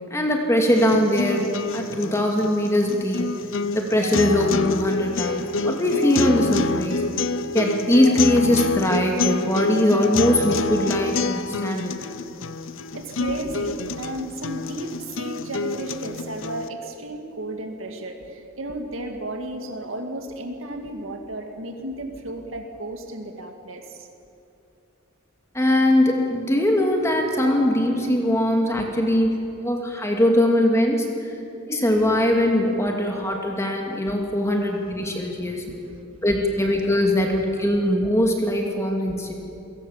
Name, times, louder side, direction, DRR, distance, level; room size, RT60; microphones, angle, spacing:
voice 1, 0.1-3.3 3.7-7.0 7.5-12.0 25.5-29.3 29.6-31.3 31.7-35.6 36.2-39.3, left 1 dB, 15° left, 1 dB, 2.3 m, -21 dB
sound 1, 0.7-16.7, left 3 dB, 65° left, 0.8 m, -27 dB
voice 2, 12.9-24.1 28.7-28.9 34.4-34.5 35.3-36.0 39.1-39.2, right 1 dB, 75° right, 4 dB, 2.2 m, -34 dB
29.0 x 17.5 x 7.3 m, 2.6 s
head